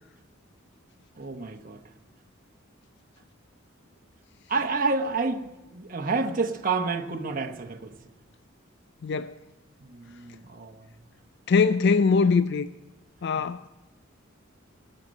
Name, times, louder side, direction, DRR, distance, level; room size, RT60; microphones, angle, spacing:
voice 1, 1.1-1.8 4.5-8.0 9.8-11.0 13.3-13.5, right 4 dB, 45° right, 1.0 m, -29 dB
voice 2, 9.0-9.3 11.5-12.7 13.2-13.7, left 5 dB, 55° left, 0.4 m, -22 dB
19.0 x 6.6 x 8.6 m
head